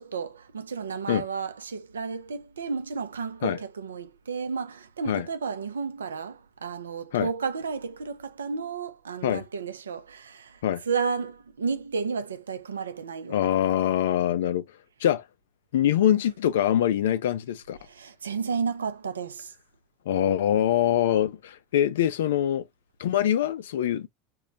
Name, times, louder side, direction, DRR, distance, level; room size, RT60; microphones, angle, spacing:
voice 1, 0.0-13.5 17.8-19.5, right 5 dB, 85° right, 0.4 m, -32 dB
voice 2, 13.3-14.6 15.0-15.2 15.7-17.8 20.1-22.6 23.0-24.1, left 11 dB, 75° left, 0.3 m, -24 dB
2.2 x 2.1 x 3.8 m
hypercardioid pair, 85°, 0 cm